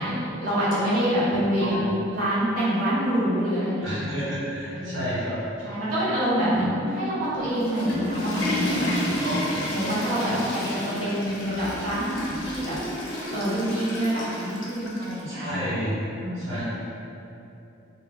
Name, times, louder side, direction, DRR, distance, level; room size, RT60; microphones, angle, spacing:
voice 1, 0.0-1.8 2.1-4.2 4.7-5.2 5.6-9.0 9.7-12.7 13.3-15.7 16.2-16.6, equal, 40° right, -10 dB, 0.8 m, -26 dB
voice 2, 3.8-5.3 6.5-6.7 9.2-9.6 10.3-10.5 15.3-15.9 16.4-16.7, equal, 65° right, -13 dB, 1.4 m, -31 dB
Water / Toilet flush, 7.4-15.2, left 1 dB, 80° left, 0.6 m, -31 dB
2.3 x 2.3 x 3.7 m, 2.8 s
head